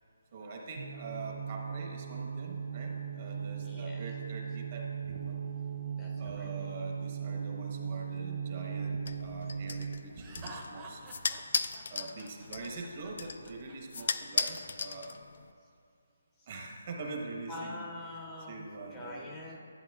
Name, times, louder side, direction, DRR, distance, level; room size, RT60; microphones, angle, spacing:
voice 1, 0.3-5.4 6.2-11.0 11.9-15.2 16.5-17.8 18.5-19.3, right 3 dB, 40° right, 0 dB, 1.2 m, -44 dB
sound 1, 0.8-10.1, right 7 dB, 60° right, 0.5 m, -38 dB
voice 2, 3.6-4.0 6.0-6.5 16.4-16.5 17.5-19.6, left 1 dB, 10° left, -2 dB, 0.7 m, -45 dB
sound 2, 9.1-15.5, left 4 dB, 55° left, 0.4 m, -37 dB
Laughter, 10.2-14.1, right 3 dB, 20° right, 0.9 m, -49 dB
11.5 x 8.9 x 2.4 m, 2.3 s
hypercardioid pair, 165°, 0 cm